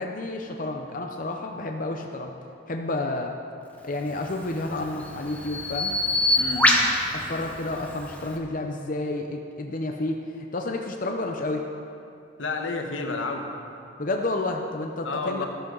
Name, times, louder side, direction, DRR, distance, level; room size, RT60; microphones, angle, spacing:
voice 1, 0.0-2.3 2.7-3.3 3.8-5.9 7.1-10.2 10.5-11.7 14.0-15.4, left 2 dB, 45° left, 2 dB, 0.7 m, -30 dB
Bird vocalization bird call bird song, 4.2-8.4, left 1 dB, 10° left, 1.0 m, -26 dB
voice 2, 6.4-6.9 12.4-13.5 15.0-15.5, left 3 dB, 90° left, 3 dB, 1.3 m, -30 dB
13.5 x 13.0 x 3.9 m, 2.6 s
head